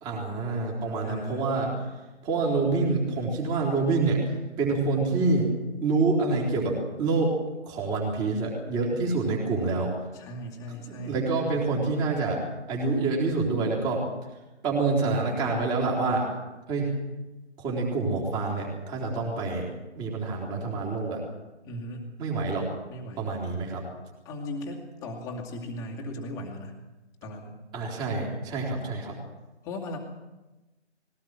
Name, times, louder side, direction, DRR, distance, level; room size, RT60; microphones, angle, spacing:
voice 1, 0.0-1.7 2.2-4.2 4.6-5.5 5.8-7.3 7.6-9.9 10.9-12.4 12.7-14.0 14.6-16.3 16.7-16.9 17.6-19.7 20.0-21.2 22.2-22.7 23.2-23.8 27.7-29.2, right 3 dB, 15° right, -1 dB, 3.8 m, -27 dB
voice 2, 1.0-1.5 10.1-11.2 21.7-22.1 22.9-23.3 24.2-26.7 27.2-27.6 29.6-30.0, left 1 dB, 10° left, -1 dB, 2.3 m, -37 dB
21.0 x 18.0 x 7.7 m, 1.1 s
figure-of-eight pair, 155°, 35 cm